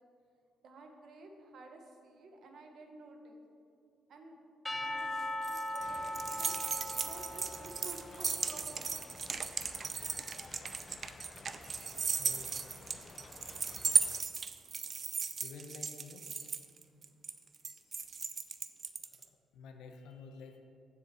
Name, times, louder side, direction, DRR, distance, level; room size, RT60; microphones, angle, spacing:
voice 1, 0.6-3.4 4.1-4.4 4.8-6.6 6.9-9.3, right 3 dB, 65° right, 3 dB, 1.4 m, -52 dB
Percussion / Church bell, 4.7-8.8, left 1 dB, 5° left, 1.0 m, -40 dB
sound 1, 5.0-19.2, right 5 dB, 40° right, 0.5 m, -36 dB
sound 2, 5.8-14.2, left 4 dB, 40° left, 0.5 m, -53 dB
voice 2, 12.2-12.5 15.4-16.2 19.5-20.6, left 4 dB, 85° left, 5 dB, 1.0 m, -50 dB
7.6 x 6.7 x 7.6 m, 2.6 s
cardioid pair, 90°, 0 cm